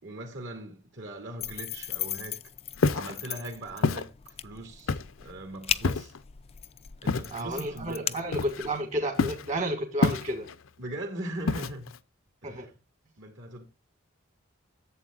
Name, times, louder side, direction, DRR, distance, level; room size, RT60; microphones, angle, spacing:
voice 1, 0.0-2.4 2.9-6.1 7.0-8.2 10.8-11.9 12.4-12.7 13.2-13.6, right 1 dB, 65° right, 2.6 m, -40 dB
sound 1, 1.4-8.8, left 10 dB, 30° left, 0.4 m, -38 dB
Walk footsteps, 2.8-3.1 3.8-4.1 4.9-5.2 5.8-6.2 7.1-7.4 8.3-8.8 9.2-9.5 10.0-10.5 11.5-12.0, left 4 dB, 75° left, 0.6 m, -27 dB
voice 2, 7.3-10.5 12.4-12.7, right 1 dB, 35° right, 1.8 m, -31 dB
11.0 x 7.8 x 2.4 m
head